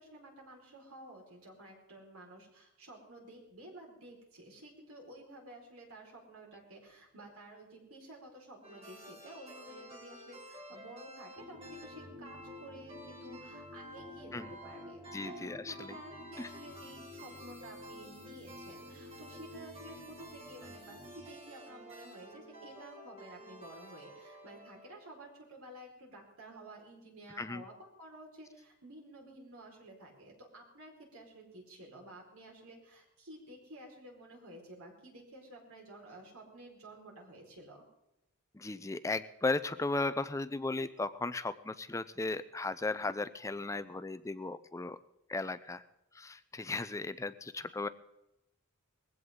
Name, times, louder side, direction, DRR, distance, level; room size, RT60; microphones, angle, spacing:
voice 1, 0.0-37.8, right 1 dB, 90° right, 0 dB, 4.7 m, -52 dB
sound 1, 8.6-25.2, right 1 dB, 30° right, 3.8 m, -51 dB
sound 2, 11.4-21.3, left 3 dB, 60° right, 4.3 m, -52 dB
voice 2, 15.1-16.0 16.4-16.5 27.4-27.6 38.5-45.0 45.3-45.8 46.1-47.9, left 3 dB, 15° left, 13 dB, 0.4 m, -36 dB
20.5 x 16.0 x 3.8 m, 0.89 s
head